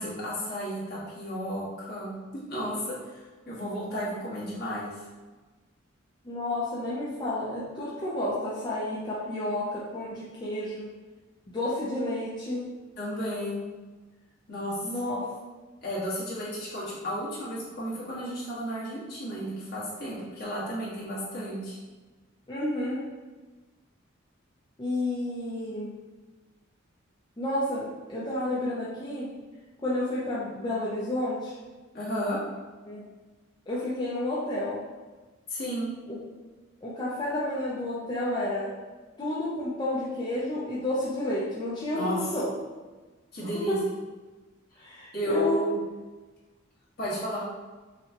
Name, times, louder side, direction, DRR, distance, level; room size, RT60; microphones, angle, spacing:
voice 1, 0.0-2.2 2.5-5.0 13.0-13.6 14.5-15.0 15.8-21.8 31.9-32.4 35.5-35.9 41.9-42.2 43.3-43.8 45.1-45.7 47.0-47.4, equal, 50° left, -8 dB, 1.4 m, -33 dB
voice 2, 6.2-10.9 11.5-12.7 14.8-15.3 22.5-23.0 24.8-25.9 27.4-29.3 29.8-31.5 32.9-33.0 33.7-34.8 36.1-36.2 36.8-38.7 39.2-42.5 43.4-43.8 44.8-45.6, left 1 dB, 20° left, -8 dB, 0.6 m, -31 dB
5.7 x 2.3 x 2.9 m, 1.3 s
head